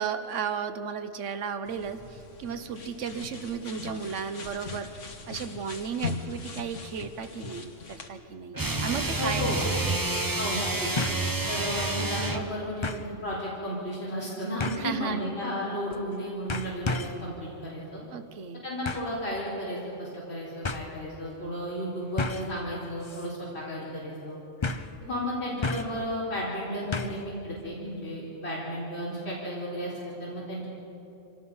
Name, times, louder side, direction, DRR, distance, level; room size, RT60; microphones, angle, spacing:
voice 1, 0.0-4.9 5.3-9.5 14.8-15.2 18.1-18.6, right 6 dB, 80° right, 9 dB, 1.3 m, -34 dB
sound 1, 1.7-8.1, left 4 dB, 90° left, 1.7 m, -40 dB
sound 2, 8.5-12.5, right 2 dB, 20° right, 1.0 m, -29 dB
voice 2, 9.2-9.6 10.4-10.9 11.5-18.0 18.6-24.4 25.0-30.7, equal, 60° left, -7 dB, 4.5 m, -33 dB
sound 3, 11.0-11.3 11.7-11.8 12.8-13.1 14.6-15.0 15.9-16.2 16.5-17.2 18.9-19.2 20.1-20.2 20.6-20.9 22.2-22.6 23.0-23.3 23.6-23.7 24.6-25.0 25.6-26.0 26.9-27.3 27.6-27.7, left 3 dB, 30° left, 0.7 m, -32 dB
25.5 x 18.5 x 5.6 m, 3.0 s
omnidirectional pair, 1.2 m